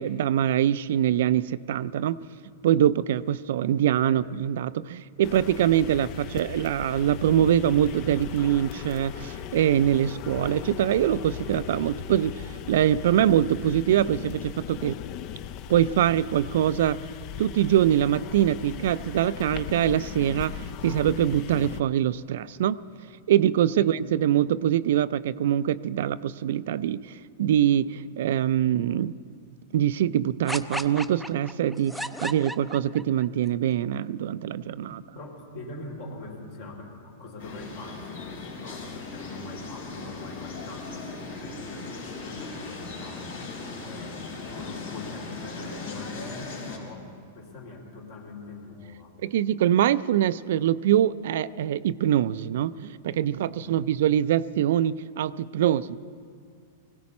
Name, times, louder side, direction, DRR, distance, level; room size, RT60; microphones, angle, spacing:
voice 1, 0.0-2.2 2.6-15.0 15.7-17.1 17.4-22.8 23.3-29.2 29.7-35.0 49.2-56.0, right 11 dB, 70° right, 16 dB, 0.4 m, -24 dB
sound 1, 5.2-21.8, left 10 dB, 45° left, 0.6 m, -38 dB
sound 2, 30.5-33.2, equal, ahead, 0.5 m, -34 dB
voice 2, 34.9-49.1 53.4-53.7, left 2 dB, 65° left, -2 dB, 4.2 m, -43 dB
sound 3, 37.4-46.8, left 3 dB, 80° left, 4.4 m, -38 dB
20.5 x 17.0 x 4.2 m, 2.2 s
hypercardioid pair, 120°, 0 cm